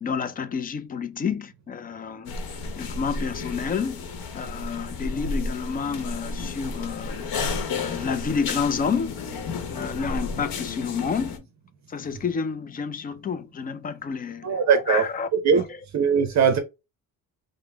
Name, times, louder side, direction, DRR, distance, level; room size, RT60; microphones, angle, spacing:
voice 1, 0.0-7.3 7.7-9.2 9.7-11.5 11.9-15.3 15.5-15.6, left 6 dB, 25° left, 0.4 m, -30 dB
sound 1, 2.3-11.4, left 4 dB, 85° left, 1.0 m, -32 dB
voice 2, 14.4-15.0 15.4-15.6 15.9-16.6, right 6 dB, 50° right, 0.7 m, -20 dB
5.1 x 2.1 x 3.3 m
cardioid pair, 180°, 35 cm